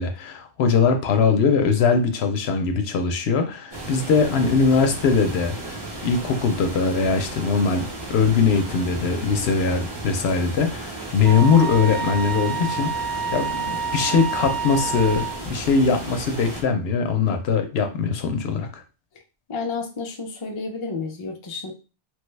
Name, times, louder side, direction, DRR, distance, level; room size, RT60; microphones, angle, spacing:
voice 1, 0.0-18.8, left 5 dB, 70° left, 6 dB, 0.8 m, -21 dB
sound 1, 3.7-16.6, right 2 dB, 25° right, 0.7 m, -34 dB
Wind instrument woodwind instrument, 11.2-15.5, right 6 dB, 75° right, 0.8 m, -28 dB
voice 2, 19.5-21.7, left 4 dB, 40° left, 2 dB, 0.4 m, -31 dB
3.2 x 2.2 x 3.2 m, 0.32 s
omnidirectional pair, 1.1 m